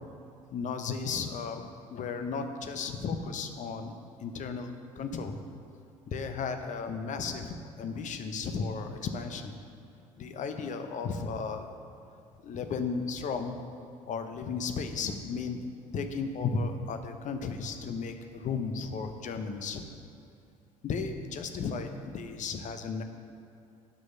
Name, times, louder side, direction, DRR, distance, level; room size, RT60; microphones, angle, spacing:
voice 1, 0.5-3.9 4.2-5.4 6.1-9.5 10.2-11.7 12.4-13.6 14.1-15.6 15.9-19.8 20.8-23.0, left 5 dB, 45° left, 7 dB, 0.9 m, -34 dB
9.2 x 6.3 x 5.5 m, 2.6 s
figure-of-eight pair, 55°, 17 cm